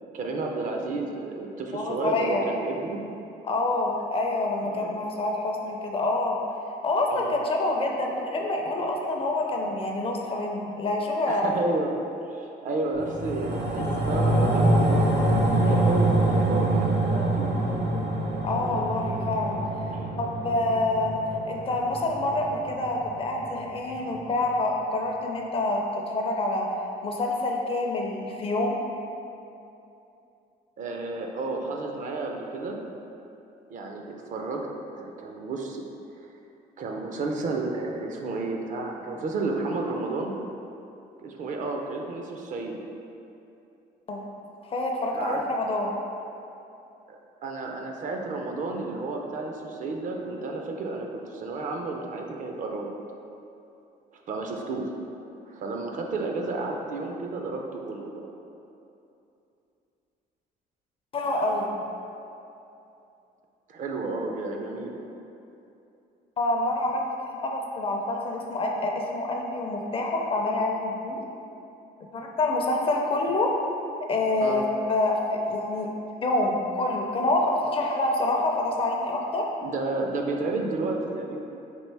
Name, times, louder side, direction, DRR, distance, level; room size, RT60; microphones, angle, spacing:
voice 1, 0.0-3.0 4.6-4.9 7.1-7.4 11.3-11.9 12.3-17.5 19.9-20.2 30.8-32.8 33.7-34.6 35.0-35.8 36.2-36.3 36.8-40.3 41.2-42.8 45.1-45.4 47.1-52.9 54.1-54.9 55.5-58.2 63.7-65.0 74.4-74.6 79.6-81.4, right 3 dB, 50° right, 1 dB, 0.4 m, -31 dB
voice 2, 1.7-2.4 3.4-6.4 6.8-11.5 18.4-19.6 20.2-26.7 27.0-28.8 44.1-44.2 44.7-45.9 61.1-61.8 66.4-71.2 72.1-73.5 74.1-75.9 76.2-79.5, left 2 dB, 35° left, 0 dB, 0.4 m, -27 dB
sound 1, 12.9-23.5 23.9-24.0, right 1 dB, 80° right, 0.7 m, -25 dB
4.4 x 2.5 x 3.3 m, 2.8 s
cardioid pair, 110°, 17 cm